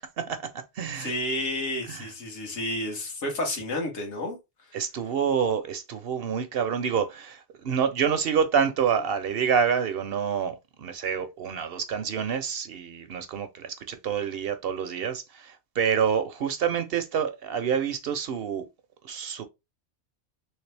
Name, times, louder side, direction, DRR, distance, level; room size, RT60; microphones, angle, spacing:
voice 1, 0.0-1.1 1.9-2.1 4.7-18.7 19.0-19.4, right 7 dB, 65° right, 0.7 m, -27 dB
voice 2, 1.0-4.4, left 1 dB, 75° left, 1.5 m, -31 dB
3.2 x 3.2 x 3.2 m
omnidirectional pair, 1.2 m